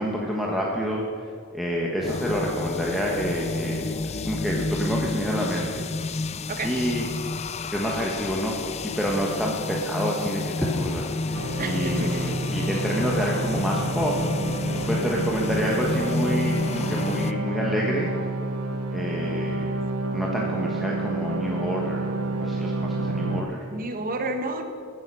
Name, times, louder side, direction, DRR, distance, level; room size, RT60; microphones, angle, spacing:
voice 1, 0.0-5.8 6.6-7.1 7.7-8.6 8.8-14.1 14.9-18.1 18.9-19.7 20.1-22.1 22.4-23.7, equal, ahead, -3 dB, 1.3 m, -28 dB
sound 1, 2.0-17.3, left 3 dB, 30° left, 0.4 m, -30 dB
sound 2, 11.3-23.4, right 2 dB, 90° right, 1.0 m, -29 dB
voice 2, 11.6-12.4 23.7-24.6, right 2 dB, 40° right, 5 dB, 1.2 m, -30 dB
15.0 x 9.6 x 5.5 m, 2.3 s
head